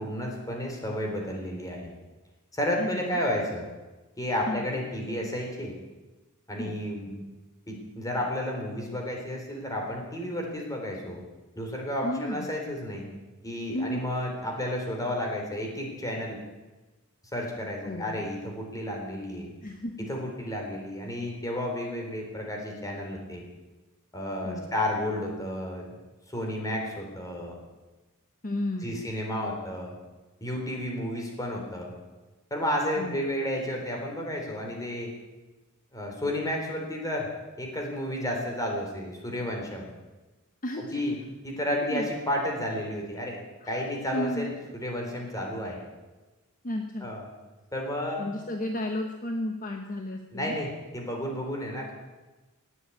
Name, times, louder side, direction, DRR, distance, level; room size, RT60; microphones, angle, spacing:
voice 1, 0.0-1.9 2.5-3.7 4.2-5.7 6.5-7.1 7.7-11.2 11.6-13.1 13.4-16.4 17.3-19.5 20.1-23.5 24.1-25.9 26.3-27.6 28.8-29.9 30.4-31.9 32.5-35.1 35.9-37.3 37.6-39.9 40.8-41.2 41.4-43.4 43.7-45.8 47.0-47.3 47.7-48.3 50.3-51.9, left 1 dB, 15° left, 1 dB, 3.7 m, -32 dB
voice 2, 2.8-3.2 4.5-4.7 6.6-6.8 12.0-12.5 13.7-14.0 17.8-18.2 19.6-20.1 24.4-24.7 28.4-29.0 32.9-33.2 40.6-41.0 41.8-42.1 43.6-43.8 44.1-44.5 46.6-47.1 48.2-50.6, left 1 dB, 40° left, 3 dB, 1.1 m, -33 dB
18.5 x 8.0 x 8.7 m, 1.2 s
head